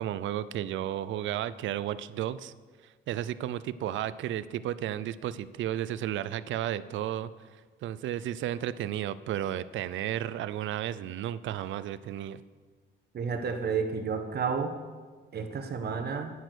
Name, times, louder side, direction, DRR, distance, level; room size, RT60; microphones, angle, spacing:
voice 1, 0.0-2.5 3.1-7.3 7.8-12.4, right 11 dB, 75° right, 16 dB, 0.5 m, -33 dB
voice 2, 13.1-14.7 15.3-16.3, right 5 dB, 55° right, 6 dB, 1.4 m, -31 dB
10.0 x 8.8 x 6.4 m, 1.5 s
cardioid pair, 90°, 20 cm